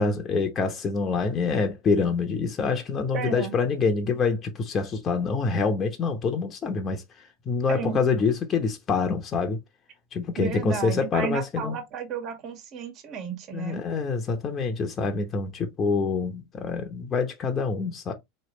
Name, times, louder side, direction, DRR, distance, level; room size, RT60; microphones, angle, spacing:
voice 1, 0.0-7.0 7.5-9.6 10.1-11.8 13.5-18.1, left 4 dB, 35° left, 0.9 m, -26 dB
voice 2, 3.1-3.5 7.7-8.0 10.4-13.8, right 6 dB, 50° right, 1.7 m, -33 dB
4.1 x 3.3 x 3.1 m
hypercardioid pair, 95°, 0 cm